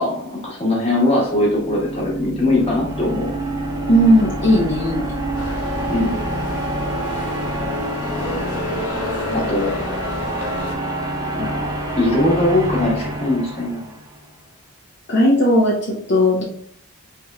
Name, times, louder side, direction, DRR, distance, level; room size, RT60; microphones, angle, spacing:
voice 1, 0.0-3.3 5.9-6.2 9.3-9.7 11.3-13.8, left 1 dB, 30° left, -4 dB, 1.4 m, -21 dB
sound 1, 1.0-14.1, right 1 dB, 15° right, 0.8 m, -27 dB
voice 2, 3.9-5.1 9.3-9.5 15.1-16.4, equal, 55° left, -4 dB, 0.8 m, -16 dB
sound 2, 5.4-10.7, left 1 dB, 85° left, 0.6 m, -32 dB
4.2 x 3.5 x 2.3 m, 0.65 s
head